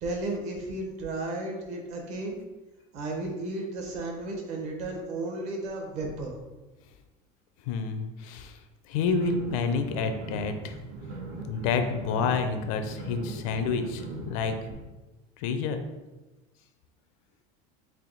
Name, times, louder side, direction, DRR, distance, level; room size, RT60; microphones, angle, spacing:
voice 1, 0.0-2.4 2.9-6.4, right 2 dB, 40° right, 1 dB, 0.7 m, -34 dB
voice 2, 7.7-8.6 8.9-10.8 11.5-14.5 15.4-15.8, left 5 dB, 75° left, 8 dB, 0.5 m, -29 dB
sound 1, 9.1-14.7, right 2 dB, 75° right, 1.1 m, -39 dB
3.4 x 2.6 x 3.9 m, 1.1 s
cardioid pair, 175°, 18 cm